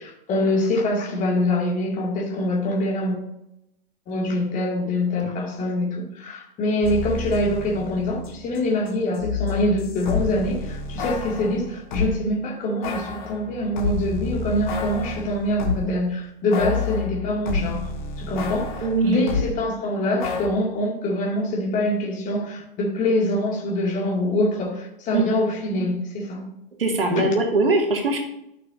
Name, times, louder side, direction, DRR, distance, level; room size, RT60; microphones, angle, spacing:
voice 1, 0.0-3.2 4.1-17.9 18.2-18.7 19.0-26.5 27.1-27.3, left 1 dB, 25° left, 2.1 m, -24 dB
sound 1, 6.8-12.2 12.8-16.0 16.5-19.5 20.2-20.5, left 5 dB, 50° left, 1.5 m, -30 dB
voice 2, 18.8-19.3 25.1-25.3 26.8-28.2, right 2 dB, 70° right, 1.8 m, -21 dB
12.5 x 6.2 x 2.6 m
figure-of-eight pair, 105°, 30 cm